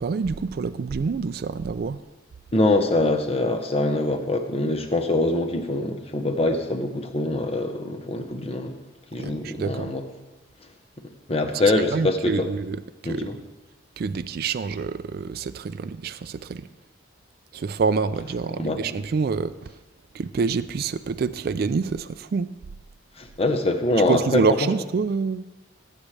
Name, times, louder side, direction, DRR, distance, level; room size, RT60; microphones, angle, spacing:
voice 1, 0.0-2.0 9.2-9.9 11.5-13.3 14.0-16.7 17.5-19.7 20.1-22.5 24.1-25.5, right 5 dB, 50° right, 12 dB, 0.3 m, -27 dB
voice 2, 2.5-8.7 9.1-10.0 11.3-12.5 13.0-13.4 18.6-19.0 23.2-24.7, left 2 dB, 30° left, 5 dB, 0.9 m, -24 dB
18.0 x 8.5 x 3.3 m, 1.1 s
head